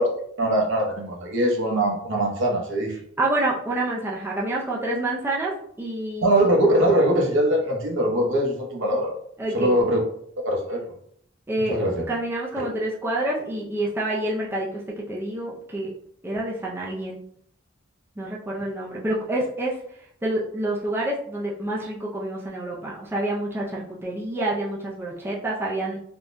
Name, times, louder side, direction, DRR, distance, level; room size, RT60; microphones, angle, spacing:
voice 1, 0.0-3.0 6.2-9.1 9.5-10.0 10.4-11.0 11.7-12.1 12.6-12.7, right 1 dB, 65° right, 0 dB, 0.7 m, -22 dB
voice 2, 3.2-6.3 9.4-9.7 11.5-15.9 16.2-17.2 18.2-19.8 20.2-26.0, right 1 dB, 10° right, -4 dB, 0.4 m, -28 dB
3.5 x 2.1 x 2.5 m, 0.66 s
head